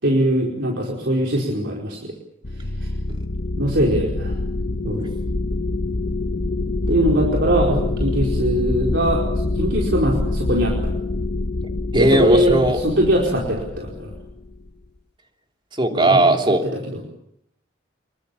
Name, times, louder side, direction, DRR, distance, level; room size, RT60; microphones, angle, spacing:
voice 1, 0.0-2.0 3.6-4.3 4.8-5.0 6.9-10.7 11.9-14.1 15.9-16.2 16.6-17.0, equal, 65° right, -2 dB, 4.9 m, -21 dB
sound 1, 2.4-14.7, left 2 dB, 55° left, 1.3 m, -25 dB
voice 2, 11.9-12.8 15.8-16.6, right 1 dB, 25° right, 3 dB, 3.2 m, -17 dB
27.5 x 23.0 x 7.1 m, 0.75 s
head